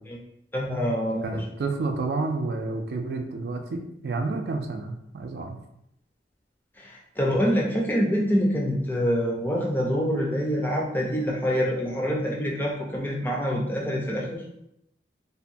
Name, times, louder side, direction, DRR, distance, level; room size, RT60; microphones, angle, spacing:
voice 1, 0.5-1.4 6.8-14.4, equal, 10° left, -2 dB, 0.4 m, -26 dB
voice 2, 1.2-5.6, right 3 dB, 70° right, 4 dB, 0.4 m, -30 dB
2.7 x 2.2 x 2.5 m, 0.79 s
head